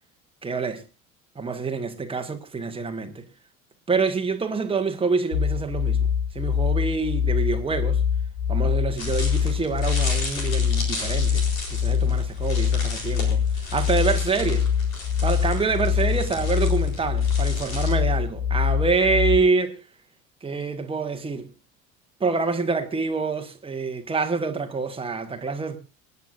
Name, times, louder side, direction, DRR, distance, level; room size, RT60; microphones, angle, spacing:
voice 1, 0.4-0.8 1.3-3.2 3.9-6.1 6.3-8.0 8.5-14.7 15.2-19.8 20.4-21.5 22.2-25.8, right 4 dB, 15° right, 1.5 m, -26 dB
sound 1, 5.3-19.4, left 7 dB, 35° left, 1.6 m, -24 dB
sound 2, 9.0-17.9, left 2 dB, 65° left, 4.1 m, -35 dB
25.5 x 9.5 x 2.6 m
figure-of-eight pair, 65°, 42 cm